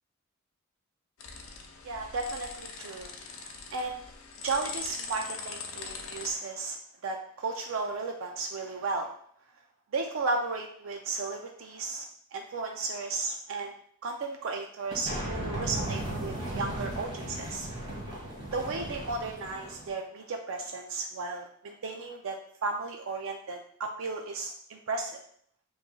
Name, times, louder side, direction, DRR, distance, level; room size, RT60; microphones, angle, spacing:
sound 1, 1.2-6.3, left 4 dB, 60° left, 0.7 m, -41 dB
voice 1, 1.8-4.0 4.4-9.1 9.9-13.7 14.0-17.7 18.5-25.2, right 3 dB, 60° right, 3 dB, 0.4 m, -34 dB
sound 2, 14.9-19.9, right 1 dB, 25° right, 1.5 m, -36 dB
7.6 x 3.1 x 2.2 m, 0.62 s
head